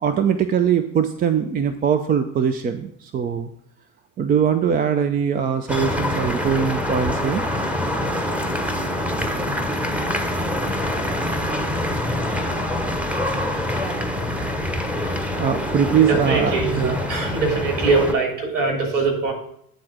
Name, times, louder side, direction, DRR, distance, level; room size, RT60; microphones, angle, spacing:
voice 1, 0.0-3.5 4.2-7.4 15.3-17.0 18.4-18.5, right 7 dB, 20° right, 9 dB, 0.4 m, -21 dB
sound 1, 5.7-18.1, left 1 dB, 5° right, 0.9 m, -25 dB
voice 2, 16.1-19.3, right 3 dB, 45° right, 0 dB, 3.2 m, -22 dB
9.3 x 3.8 x 6.3 m, 0.70 s
figure-of-eight pair, 65°, 42 cm